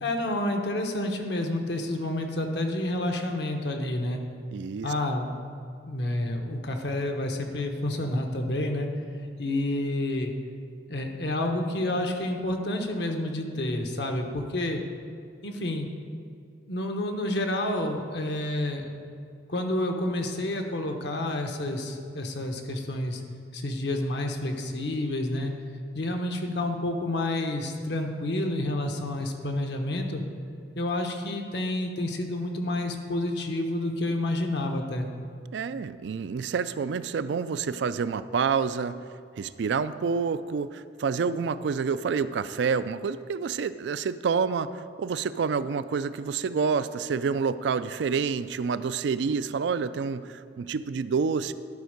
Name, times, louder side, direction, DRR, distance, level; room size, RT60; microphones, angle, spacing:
voice 1, 0.0-4.2 4.8-5.3 5.9-8.9 9.4-10.3 10.9-14.8 15.4-15.9 16.7-18.9 19.5-23.2 23.5-25.5 25.9-30.2 30.8-35.1, left 1 dB, 70° left, 3 dB, 1.0 m, -29 dB
voice 2, 4.5-4.9 35.5-39.0 39.4-51.5, right 5 dB, 75° right, 14 dB, 0.3 m, -28 dB
12.0 x 4.5 x 6.5 m, 2.4 s
head